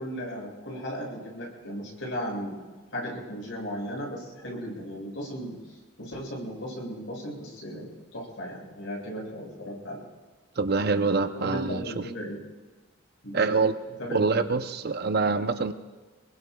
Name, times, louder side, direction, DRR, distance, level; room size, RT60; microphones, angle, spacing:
voice 1, 0.0-2.6 2.9-10.0 11.4-12.4 13.2-13.4 14.0-14.5, equal, 65° left, -3 dB, 7.0 m, -36 dB
voice 2, 10.6-11.8 13.3-13.7 14.1-15.7, right 4 dB, 50° right, 9 dB, 0.7 m, -25 dB
27.0 x 21.5 x 2.4 m, 1.2 s
head